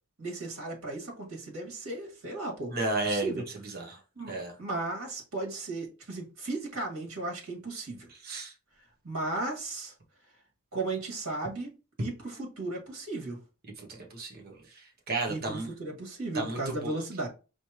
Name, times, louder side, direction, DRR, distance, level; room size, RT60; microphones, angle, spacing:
voice 1, 0.2-2.7 3.0-3.4 4.2-4.3 4.6-8.1 9.0-9.9 10.7-11.7 12.0-13.4 15.3-17.3, right 2 dB, 85° right, 1.9 m, -35 dB
voice 2, 2.7-3.3 3.7-4.0 4.3-4.5 8.2-8.5 13.8-15.7 16.3-17.0, right 2 dB, 45° right, 1.1 m, -33 dB
5.0 x 3.2 x 2.9 m
head